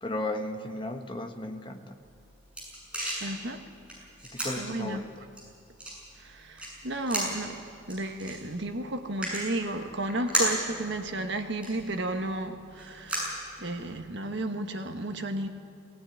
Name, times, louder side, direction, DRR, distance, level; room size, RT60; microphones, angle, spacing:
voice 1, 0.0-2.0 4.3-5.1, left 1 dB, 25° left, 6 dB, 1.2 m, -35 dB
sound 1, 2.0-14.1, right 1 dB, 5° right, 7.4 m, -36 dB
voice 2, 3.2-3.6 4.6-5.1 6.2-6.6 6.8-7.6 7.9-15.5, right 2 dB, 60° right, 6 dB, 1.5 m, -33 dB
18.0 x 17.5 x 9.9 m, 2.4 s
head